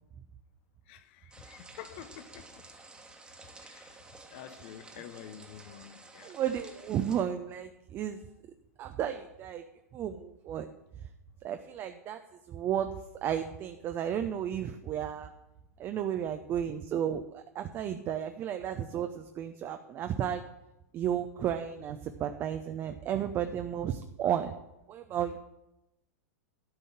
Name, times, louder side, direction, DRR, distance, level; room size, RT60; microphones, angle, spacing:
voice 1, 0.9-2.6 3.6-4.0 4.3-6.3, left 10 dB, 45° left, 0.9 m, -48 dB
sound 1, 1.3-7.2, right 3 dB, 10° right, 1.4 m, -52 dB
voice 2, 6.2-8.2 8.8-9.7 9.9-10.7 11.4-12.9 13.2-15.3 15.8-20.4 20.9-24.5 24.9-25.4, right 9 dB, 30° right, 0.7 m, -33 dB
12.5 x 5.4 x 7.6 m
figure-of-eight pair, 95°, 8 cm